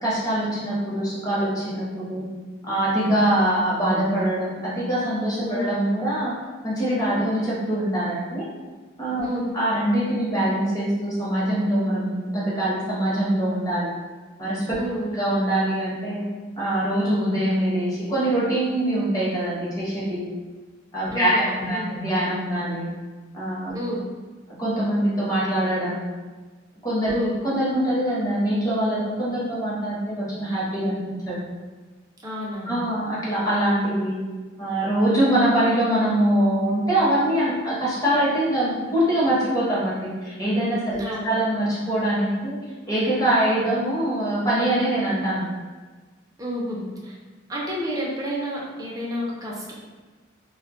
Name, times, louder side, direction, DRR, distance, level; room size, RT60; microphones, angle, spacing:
voice 1, 0.0-2.2 2.6-6.3 6.6-8.5 9.0-9.3 9.5-14.0 14.4-14.6 15.1-16.2 16.6-20.3 20.9-22.9 23.3-23.7 24.6-26.1 26.8-31.0 31.3-31.4 32.7-34.2 34.6-42.6 42.9-45.4, right 1 dB, 20° left, -8 dB, 0.8 m, -23 dB
voice 2, 9.2-9.6 14.8-15.2 21.1-21.9 23.7-24.0 27.1-27.4 32.2-32.8 41.0-41.3 46.4-47.2 47.5-49.7, equal, 20° right, -4 dB, 0.5 m, -30 dB
2.2 x 2.1 x 3.6 m, 1.3 s
head